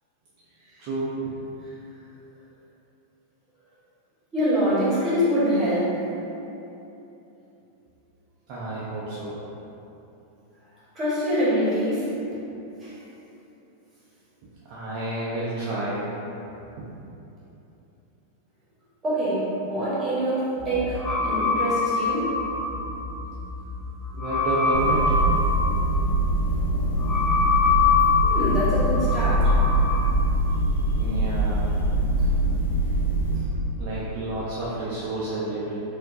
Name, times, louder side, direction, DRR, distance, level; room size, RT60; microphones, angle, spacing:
voice 1, 0.8-1.3 8.5-9.3 14.7-16.1 16.8-16.9 24.1-25.1 30.9-31.7 33.7-35.8, right 2 dB, 45° right, -8 dB, 0.5 m, -30 dB
voice 2, 4.3-6.0 10.9-12.1 12.8-13.0 19.0-22.4 28.2-29.6 33.3-33.4, equal, 20° right, -9 dB, 1.2 m, -25 dB
sound 1, 20.6-30.1, left 4 dB, 5° left, 0.7 m, -25 dB
sound 2, 24.7-33.4, right 1 dB, 60° left, 0.4 m, -23 dB
4.3 x 2.2 x 2.6 m, 3.0 s
figure-of-eight pair, 90°, 0 cm